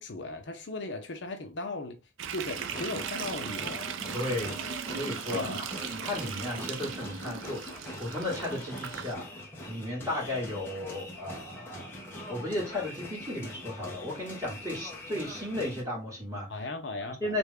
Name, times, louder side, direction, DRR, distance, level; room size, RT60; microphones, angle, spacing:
voice 1, 0.0-2.0 2.3-3.9 5.3-5.7 16.5-17.4, left 2 dB, 65° left, 0.7 m, -37 dB
sound 1, 2.2-9.1, right 7 dB, 80° right, 0.4 m, -38 dB
sound 2, 2.4-15.8, left 1 dB, 10° left, 0.8 m, -43 dB
voice 2, 4.1-5.5 5.9-9.3 9.7-11.9 12.3-16.5 17.0-17.4, left 1 dB, 15° right, 2.0 m, -35 dB
3.3 x 2.6 x 3.5 m
head